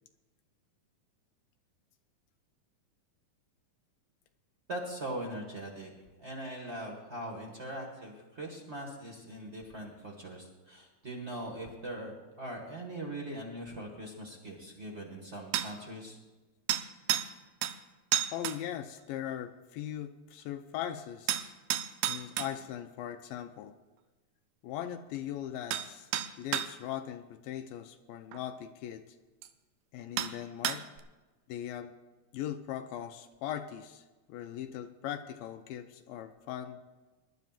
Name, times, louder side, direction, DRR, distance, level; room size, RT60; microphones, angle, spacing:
voice 1, 4.7-5.9 6.2-16.2, right 1 dB, 35° right, 0 dB, 1.1 m, -41 dB
sound 1, 15.5-15.7 16.7-17.3 17.6-17.8 18.1-18.6 21.3-22.5 25.1-25.2 25.7-25.9 26.1-26.7 28.3-28.4 29.4-29.5 30.2-30.3 30.6-31.0, right 12 dB, 85° right, 2.4 m, -31 dB
voice 2, 18.3-21.5 22.1-23.8 24.6-26.1 26.4-29.2 29.9-30.8 31.5-31.9 32.3-36.8, left 10 dB, 85° left, 7 dB, 2.3 m, -39 dB
24.5 x 12.0 x 2.5 m, 1.2 s
omnidirectional pair, 4.0 m